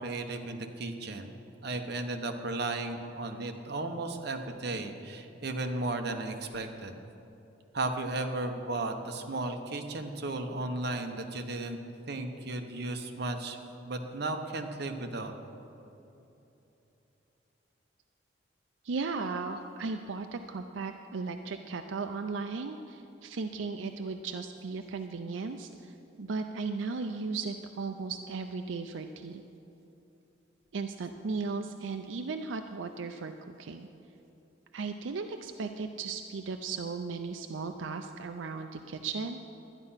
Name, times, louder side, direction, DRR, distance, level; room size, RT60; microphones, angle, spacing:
voice 1, 0.0-1.4 1.6-7.0 7.7-11.8 12.1-13.6 13.8-15.3, right 2 dB, 60° right, 4 dB, 1.0 m, -35 dB
voice 2, 18.8-29.4 30.7-33.3 33.6-33.9 34.7-39.4, right 4 dB, 85° right, 6 dB, 0.5 m, -36 dB
12.0 x 9.9 x 5.7 m, 2.9 s
head